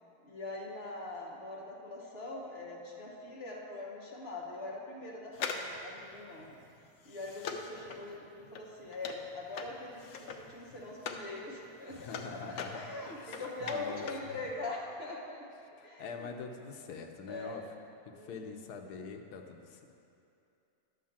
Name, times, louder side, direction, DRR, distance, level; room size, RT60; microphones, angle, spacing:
voice 1, 0.2-6.5 7.0-15.4 15.8-16.3 17.3-17.6 18.1-18.6, left 2 dB, 45° left, -2 dB, 1.2 m, -42 dB
sound 1, 5.3-11.3 11.6-14.3 14.6-14.7, left 5 dB, 65° left, 0.9 m, -42 dB
voice 2, 11.9-13.4 13.7-14.4 15.8-17.7 18.1-19.9, left 5 dB, 80° left, 4 dB, 1.2 m, -45 dB
11.0 x 3.7 x 7.1 m, 2.7 s
omnidirectional pair, 1.7 m